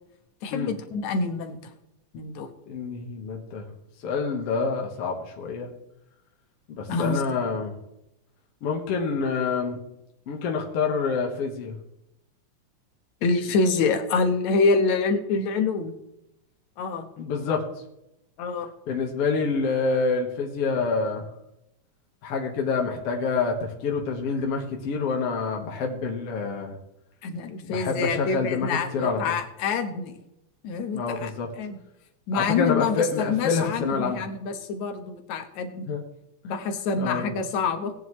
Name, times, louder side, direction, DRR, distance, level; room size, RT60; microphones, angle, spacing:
voice 1, 0.4-1.6 2.1-2.5 6.9-7.2 13.2-15.9 16.8-17.1 18.4-18.7 27.2-30.1 30.6-31.3 31.6-31.8 32.3-35.9 36.4-37.9, left 4 dB, 75° left, 7 dB, 2.6 m, -26 dB
voice 2, 2.7-3.7 4.0-5.7 6.7-7.7 8.6-9.8 10.3-11.8 17.2-17.6 18.9-21.2 22.2-26.8 27.6-29.3 30.9-31.5 32.3-34.2 35.9-36.0 37.0-37.3, left 4 dB, 60° left, 1 dB, 2.2 m, -27 dB
18.5 x 10.0 x 3.1 m, 0.84 s
omnidirectional pair, 3.3 m